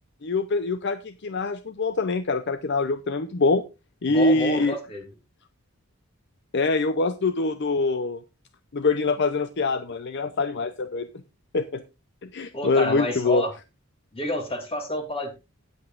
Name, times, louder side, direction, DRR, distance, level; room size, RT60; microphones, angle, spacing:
voice 1, 0.2-3.6 4.0-4.8 6.5-8.2 8.7-11.1 11.5-11.8 12.2-13.4, left 3 dB, 50° left, 11 dB, 0.6 m, -24 dB
voice 2, 4.1-5.0 12.5-13.5 14.1-15.4, left 1 dB, 25° left, 4 dB, 2.7 m, -29 dB
18.0 x 7.8 x 2.5 m, 0.26 s
head